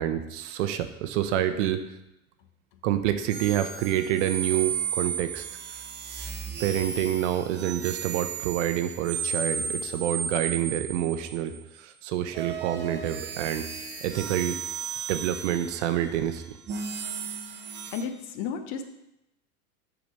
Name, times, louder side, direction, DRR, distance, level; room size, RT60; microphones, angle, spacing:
voice 1, 0.0-1.8 2.8-5.4 6.6-13.7 14.0-14.6 15.1-16.6, right 11 dB, 50° right, 9 dB, 0.8 m, -27 dB
sound 1, 3.3-11.6 12.3-18.0, right 6 dB, 25° right, 1.0 m, -34 dB
voice 2, 17.9-18.8, left 6 dB, 45° left, 8 dB, 1.0 m, -32 dB
7.8 x 5.1 x 5.2 m, 0.88 s
figure-of-eight pair, 85°, 45 cm